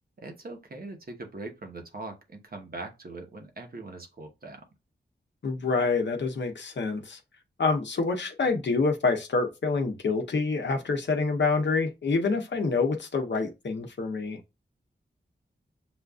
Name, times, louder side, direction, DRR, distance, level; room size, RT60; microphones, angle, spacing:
voice 1, 0.2-4.6, right 2 dB, 50° right, 1.0 m, -41 dB
voice 2, 5.4-7.2 7.6-14.4, left 4 dB, 70° left, 0.8 m, -27 dB
7.0 x 2.5 x 2.3 m
wide cardioid pair, 115°, 19 cm